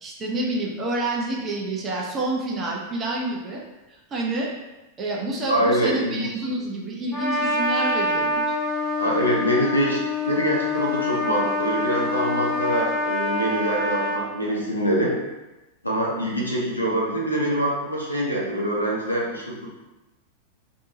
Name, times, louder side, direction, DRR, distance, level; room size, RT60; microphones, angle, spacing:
voice 1, 0.0-3.6 3.9-4.5 5.0-8.6, right 2 dB, 25° right, -2 dB, 0.6 m, -28 dB
voice 2, 5.5-6.2 9.0-10.0 10.3-15.1 15.8-19.7, right 1 dB, 85° left, -4 dB, 0.6 m, -24 dB
Trumpet, 7.1-14.2, left 2 dB, 5° right, 0.9 m, -25 dB
2.6 x 2.2 x 2.7 m, 1.0 s
figure-of-eight pair, 90°, 0 cm